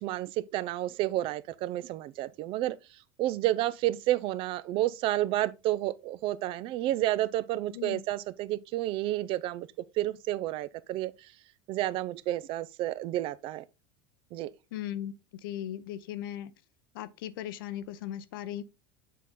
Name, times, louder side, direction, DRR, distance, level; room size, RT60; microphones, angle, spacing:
voice 1, 0.0-2.8 3.2-9.7 10.0-11.3 11.7-13.6 14.3-14.5, right 15 dB, 50° right, 0.5 m, -30 dB
voice 2, 7.7-8.0 14.7-15.1 15.4-16.5 16.9-18.6, left 11 dB, 75° left, 0.6 m, -37 dB
7.3 x 4.2 x 3.7 m
hypercardioid pair, 100°, 11 cm